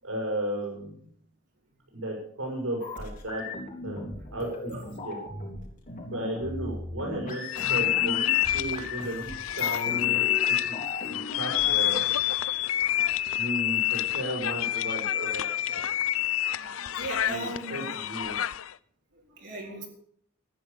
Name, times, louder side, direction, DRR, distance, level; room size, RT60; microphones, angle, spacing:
voice 1, 0.0-1.1 1.9-3.4 3.8-5.2 6.1-9.3 9.6-12.0 13.4-15.8 17.2-18.4, right 1 dB, 80° right, -1 dB, 7.1 m, -35 dB
sound 1, 2.8-11.9, left 2 dB, 40° left, 4.3 m, -38 dB
sound 2, 7.5-18.7, left 13 dB, 90° left, 0.5 m, -28 dB
voice 2, 16.5-18.0 19.1-19.9, right 2 dB, 60° right, -2 dB, 3.7 m, -39 dB
14.0 x 10.0 x 7.0 m, 0.64 s
head